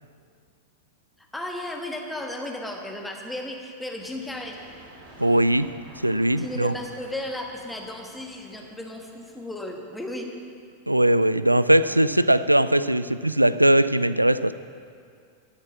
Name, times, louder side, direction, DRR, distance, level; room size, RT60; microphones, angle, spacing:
voice 1, 1.2-4.6 6.4-10.3, left 1 dB, 5° left, 1 dB, 1.4 m, -34 dB
sound 1, 4.0-9.6, right 1 dB, 50° right, 3.0 m, -50 dB
voice 2, 5.2-5.7 6.0-6.7 10.9-14.5, right 1 dB, 85° right, 15 dB, 0.3 m, -20 dB
13.0 x 7.4 x 7.1 m, 2.2 s
figure-of-eight pair, 90°, 0 cm